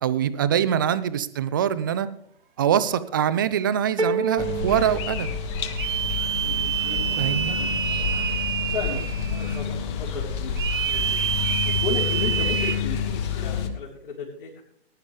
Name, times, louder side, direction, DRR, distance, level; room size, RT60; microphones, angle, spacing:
voice 1, 0.0-2.1 2.6-5.4 7.2-7.5, right 9 dB, 20° right, 14 dB, 0.5 m, -24 dB
sound 1, 4.0-6.0, right 3 dB, 80° right, 1.1 m, -29 dB
sound 2, 4.4-13.7, left 6 dB, 25° left, 1.4 m, -28 dB
sound 3, 5.8-9.6 10.6-12.7, right 9 dB, 55° right, 1.3 m, -27 dB
voice 2, 6.3-8.1 8.7-11.2 11.6-14.6, left 3 dB, 55° left, -7 dB, 3.9 m, -35 dB
19.5 x 11.5 x 3.4 m, 0.66 s
figure-of-eight pair, 130°, 32 cm